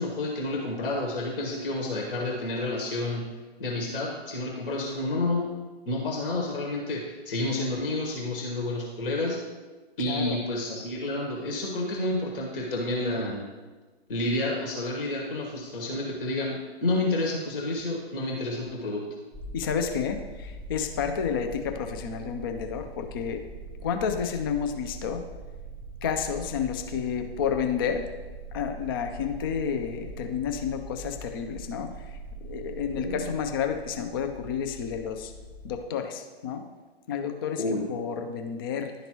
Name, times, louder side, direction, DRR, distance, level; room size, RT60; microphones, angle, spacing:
voice 1, 0.0-3.2 3.6-5.5 5.8-9.4 10.0-13.4 14.1-19.0 33.0-33.2 37.6-37.8, left 2 dB, 60° left, -1 dB, 1.4 m, -30 dB
voice 2, 10.1-10.4 19.5-23.4 23.8-25.2 26.0-28.1 28.5-35.3 35.6-36.6 37.1-38.9, left 7 dB, 25° left, 6 dB, 0.3 m, -30 dB
sound 1, 19.3-35.8, right 3 dB, 5° right, 0.7 m, -42 dB
11.0 x 3.9 x 3.0 m, 1.3 s
figure-of-eight pair, 125°, 32 cm